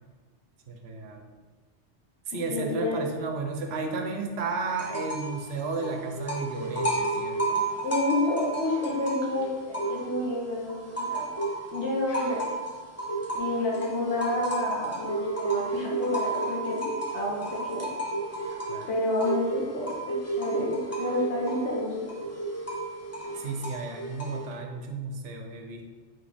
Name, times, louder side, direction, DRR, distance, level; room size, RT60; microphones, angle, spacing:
voice 1, 0.7-1.3 2.3-7.6 18.7-18.9 23.3-25.8, right 3 dB, 70° right, 4 dB, 0.8 m, -33 dB
voice 2, 2.5-3.0 7.8-11.3 11.7-12.6 13.3-17.9 18.9-22.2, left 2 dB, 75° left, -4 dB, 1.0 m, -30 dB
sound 1, 4.7-5.4 5.6-10.3 10.7-24.5, right 2 dB, 15° left, 0.6 m, -32 dB
5.0 x 3.1 x 3.3 m, 1.4 s
omnidirectional pair, 1.2 m